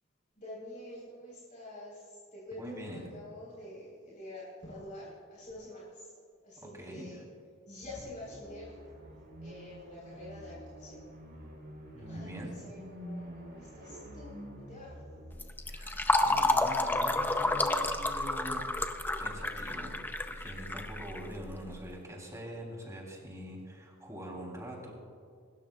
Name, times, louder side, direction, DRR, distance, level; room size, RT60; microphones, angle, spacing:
voice 1, 0.4-6.1 6.4-7.2 7.7-8.7 9.4-11.0 12.0-14.9, left 1 dB, 40° left, -7 dB, 4.0 m, -47 dB
voice 2, 2.6-3.2 6.6-7.0 11.9-12.6 15.7-18.9 19.2-19.9 20.3-24.9, equal, 15° right, -1 dB, 3.1 m, -44 dB
sound 1, 7.8-15.5, equal, 50° right, 3.9 m, -47 dB
Fill (with liquid), 15.3-21.7, left 2 dB, 10° left, 0.6 m, -30 dB
26.0 x 13.0 x 2.4 m, 2.1 s
head